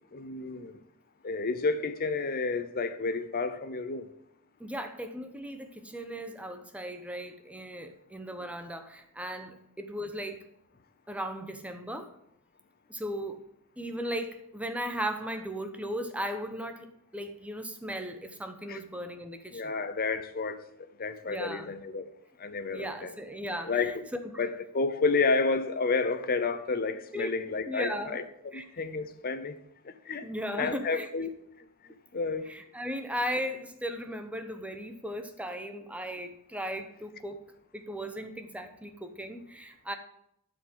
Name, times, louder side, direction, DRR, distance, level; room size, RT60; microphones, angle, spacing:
voice 1, 0.1-0.7 1.2-4.0 18.7-18.8 19.5-20.6 21.0-22.1 22.4-23.1 23.6-24.0 24.4-28.2 28.5-29.6 30.1-30.3 30.5-31.3 32.1-32.5, left 4 dB, 45° left, 0.7 m, -30 dB
voice 2, 4.6-10.4 11.1-12.1 12.9-13.4 13.8-19.8 21.2-21.7 22.7-24.4 27.1-27.3 27.7-28.2 28.5-28.6 30.2-31.1 32.5-37.4 37.7-40.0, equal, 5° right, 0.9 m, -37 dB
12.0 x 4.8 x 7.7 m
head